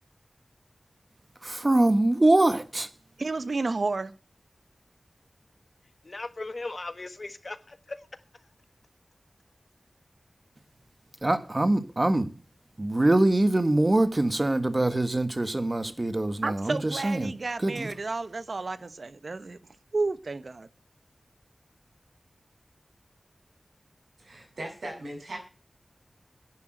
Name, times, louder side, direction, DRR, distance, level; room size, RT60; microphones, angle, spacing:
voice 1, 1.4-2.9 11.2-12.3 12.8-17.3 17.6-17.9, right 2 dB, 35° right, 1.5 m, -24 dB
voice 2, 3.2-4.1 16.4-19.6 19.9-20.7, right 3 dB, 70° right, 1.1 m, -31 dB
voice 3, 6.0-8.1 8.3-8.4, left 2 dB, 55° left, 1.4 m, -38 dB
voice 4, 24.2-25.4, right 1 dB, 85° right, 7.4 m, -38 dB
10.5 x 10.5 x 7.8 m
wide cardioid pair, 75°, 0 cm